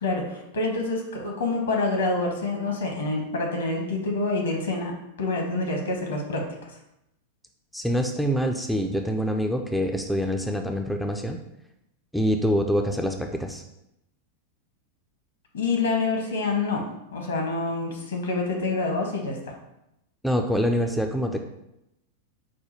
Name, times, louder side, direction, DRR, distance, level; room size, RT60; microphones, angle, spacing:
voice 1, 0.0-4.9 5.2-6.7 15.5-16.8 17.1-19.5, left 3 dB, 65° left, 1 dB, 1.0 m, -27 dB
voice 2, 7.7-11.4 12.1-13.6 20.2-21.4, equal, ahead, 3 dB, 0.3 m, -25 dB
4.9 x 2.2 x 4.3 m, 0.85 s
figure-of-eight pair, 90°, 0 cm